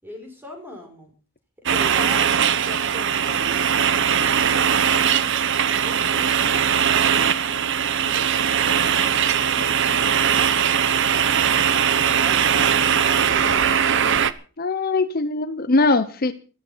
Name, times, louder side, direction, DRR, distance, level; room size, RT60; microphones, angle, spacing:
voice 1, 0.0-1.1 1.7-5.4 5.8-8.4 8.7-14.2, left 1 dB, 10° right, 3 dB, 5.4 m, -40 dB
sound 1, 1.7-14.3, right 8 dB, 60° right, 0.9 m, -20 dB
voice 2, 14.6-16.3, left 3 dB, 45° left, 11 dB, 0.9 m, -21 dB
14.0 x 13.5 x 5.7 m, 0.37 s
head